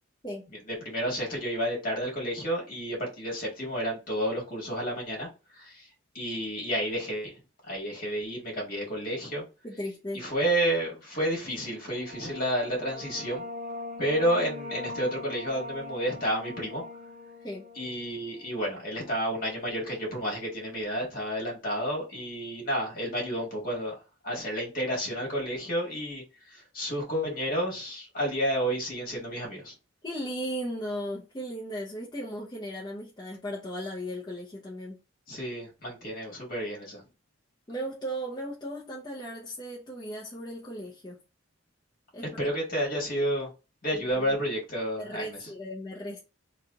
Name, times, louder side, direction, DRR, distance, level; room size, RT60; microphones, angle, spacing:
voice 1, 0.7-5.3 5.5-5.8 6.1-7.3 7.7-9.4 10.1-13.4 14.0-16.8 17.8-23.9 24.2-26.2 26.5-29.7 35.3-37.0 42.4-43.5 43.8-45.5, equal, 45° left, 1.8 m, -30 dB
voice 2, 9.6-10.2 17.4-17.7 30.0-35.0 37.7-41.2 42.1-42.5 43.9-44.4 45.0-46.2, equal, 20° left, 0.7 m, -36 dB
sound 1, 11.8-19.1, left 2 dB, 40° right, 0.7 m, -41 dB
3.2 x 2.9 x 3.8 m
head